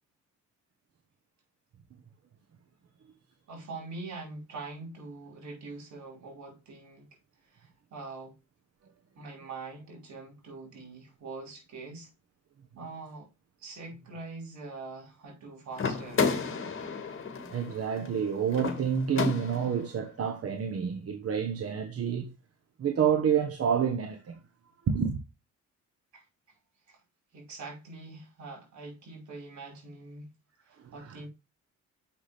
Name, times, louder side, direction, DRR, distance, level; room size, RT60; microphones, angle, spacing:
voice 1, 3.5-7.1 7.5-8.4 9.2-12.1 12.8-13.3 13.6-16.3 26.1-26.3 26.9-27.0 27.3-30.3 30.7-31.3, right 3 dB, 70° right, 5.2 m, -43 dB
sound 1, 15.7-19.9, left 5 dB, 45° left, 2.1 m, -32 dB
voice 2, 17.4-22.3 22.8-24.4 24.8-25.2 30.8-31.2, right 7 dB, 50° right, 1.2 m, -29 dB
7.1 x 5.9 x 3.4 m
cardioid pair, 90°, 30 cm